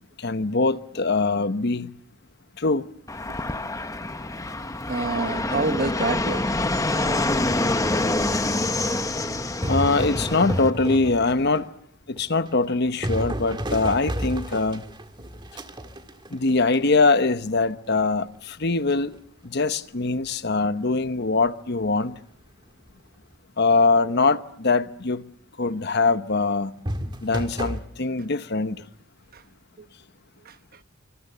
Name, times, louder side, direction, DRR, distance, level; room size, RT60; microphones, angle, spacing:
voice 1, 0.2-2.0 2.6-2.9 9.7-11.7 12.1-14.8 16.3-22.1 23.6-25.2 25.6-26.7 27.2-28.8, left 3 dB, 55° left, 1.0 m, -23 dB
Fixed-wing aircraft airplane, 3.1-10.7, left 2 dB, 15° left, 1.1 m, -26 dB
voice 2, 4.9-6.6 7.5-7.6 29.3-29.4 29.8-29.9 30.4-30.5, right 3 dB, 45° right, 1.1 m, -28 dB
sound 1, 9.5-11.7 12.2-17.2 18.9-19.1 26.8-27.8, equal, 25° right, 1.8 m, -31 dB
26.5 x 26.0 x 6.8 m
head